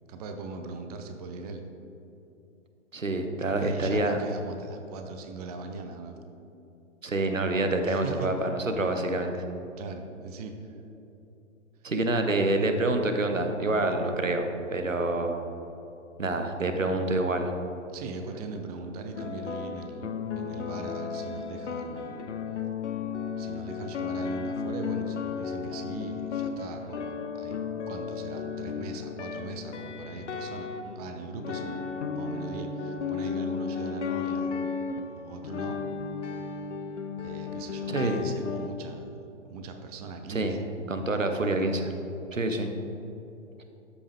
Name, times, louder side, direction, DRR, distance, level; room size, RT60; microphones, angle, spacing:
voice 1, 0.1-1.6 3.6-6.2 7.8-8.3 9.8-10.8 11.8-11.9 17.9-20.1 20.4-22.1 23.4-31.9 32.1-34.6 35.1-35.8 37.2-39.2 39.4-40.6, right 4 dB, 30° right, 5 dB, 0.7 m, -40 dB
voice 2, 2.9-4.2 7.0-9.4 11.8-15.4 16.2-17.5 37.9-38.2 40.3-40.5 40.9-41.9 42.3-42.7, right 2 dB, 85° right, 6 dB, 1.0 m, -27 dB
sound 1, 19.1-38.7, left 6 dB, 65° left, 0.8 m, -34 dB
13.0 x 5.4 x 3.5 m, 2.9 s
figure-of-eight pair, 120°, 38 cm